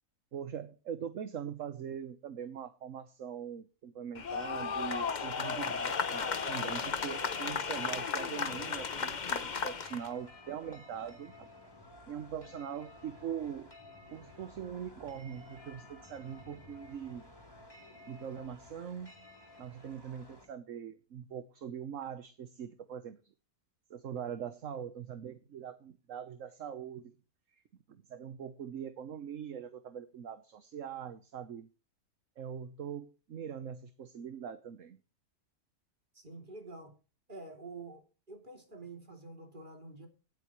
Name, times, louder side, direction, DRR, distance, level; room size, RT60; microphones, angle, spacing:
voice 1, 0.3-11.5 12.1-13.7 14.1-17.3 18.1-19.1 19.6-23.2 23.9-27.2 27.5-27.6 27.9-31.7 32.4-35.0, right 8 dB, 60° right, 1.3 m, -42 dB
sound 1, 4.1-10.1, left 5 dB, 35° left, 0.8 m, -34 dB
sound 2, 8.5-20.5, left 2 dB, 15° left, 4.2 m, -54 dB
voice 2, 36.1-36.9 37.3-40.1, right 3 dB, 30° right, 3.2 m, -48 dB
18.0 x 8.3 x 3.1 m
omnidirectional pair, 1.6 m